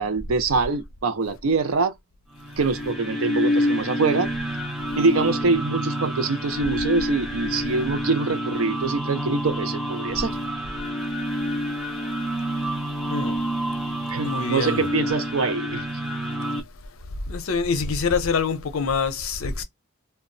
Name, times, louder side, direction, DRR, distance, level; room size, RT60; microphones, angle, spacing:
voice 1, 0.0-1.9 2.6-4.3 5.0-10.3 14.1-15.9, right 4 dB, 75° right, 0.5 m, -24 dB
sound 1, 2.3-16.6, equal, ahead, 0.6 m, -28 dB
voice 2, 13.1-13.4 14.2-14.8 17.3-19.6, left 5 dB, 70° left, 0.6 m, -25 dB
2.2 x 2.0 x 3.8 m
head